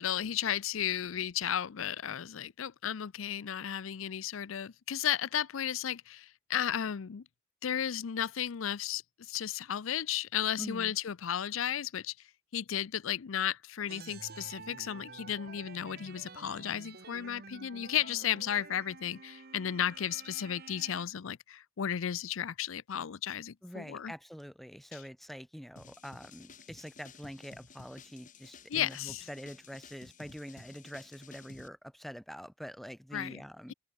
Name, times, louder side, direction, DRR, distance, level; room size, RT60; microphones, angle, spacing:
voice 1, 0.0-7.2 7.6-12.1 12.5-24.1 28.7-29.3 33.1-33.4, left 9 dB, 80° left, 0.5 m, -34 dB
voice 2, 10.6-10.9 23.6-33.7, equal, ahead, 2.4 m, -45 dB
sound 1, 13.9-21.0, right 4 dB, 50° right, 1.5 m, -50 dB
sound 2, 25.8-31.7, left 4 dB, 40° left, 2.2 m, -54 dB
head